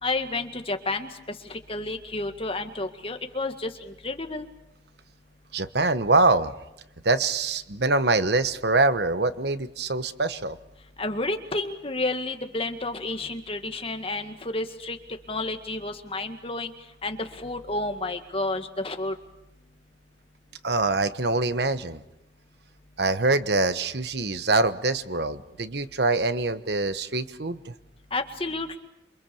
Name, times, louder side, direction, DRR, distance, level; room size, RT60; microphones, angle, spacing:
voice 1, 0.0-4.5 11.0-15.0 15.3-16.7 17.0-19.2 28.1-28.8, left 2 dB, 30° left, 6 dB, 2.0 m, -31 dB
voice 2, 5.5-6.5 7.0-10.6 20.6-22.0 23.0-27.7, right 3 dB, 60° right, 11 dB, 1.2 m, -24 dB
28.0 x 25.0 x 7.1 m, 0.88 s
head